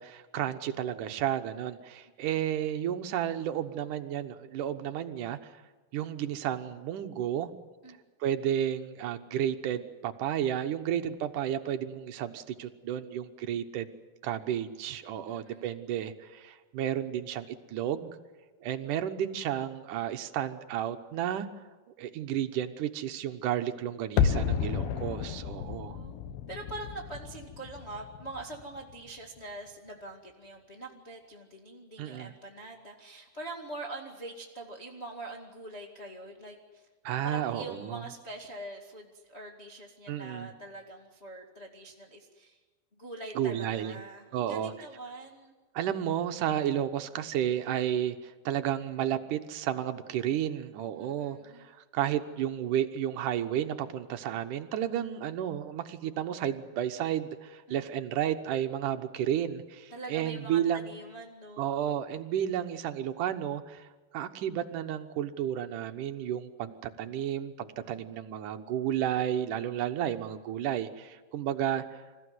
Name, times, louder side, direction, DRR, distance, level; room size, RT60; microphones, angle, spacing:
voice 1, 0.0-5.5 5.9-7.5 8.2-13.9 14.2-18.1 18.6-21.5 22.0-26.0 32.0-32.3 37.0-38.0 40.1-40.5 43.4-44.0 44.3-44.7 45.7-60.9 61.6-72.0, right 10 dB, 65° right, 7 dB, 2.3 m, -32 dB
voice 2, 15.3-15.7 25.5-26.2 26.5-36.9 37.2-42.6 43.0-45.5 50.9-51.6 57.7-57.8 59.9-61.8, right 2 dB, 25° left, -2 dB, 1.6 m, -43 dB
sound 1, 24.2-29.1 29.4-29.5, left 7 dB, 75° left, 2.9 m, -32 dB
27.0 x 15.5 x 9.6 m, 1.3 s
omnidirectional pair, 4.6 m